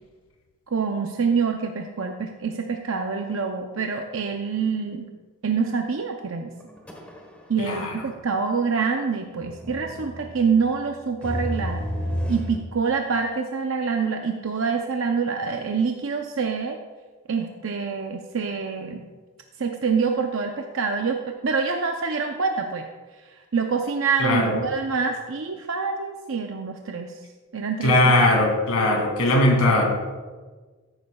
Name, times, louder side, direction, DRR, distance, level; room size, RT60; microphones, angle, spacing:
voice 1, 0.7-5.1 5.4-6.5 7.5-11.8 12.3-16.8 17.3-19.0 19.6-22.9 23.5-27.1 27.5-28.1, right 5 dB, 60° right, 3 dB, 0.6 m, -26 dB
sound 1, 6.6-7.6 7.8-7.9 9.4-12.6, equal, 5° left, 1.2 m, -31 dB
voice 2, 7.6-7.9 24.2-24.5 27.8-29.9, left 1 dB, 85° left, 1 dB, 2.6 m, -19 dB
14.0 x 10.5 x 2.3 m, 1.3 s
head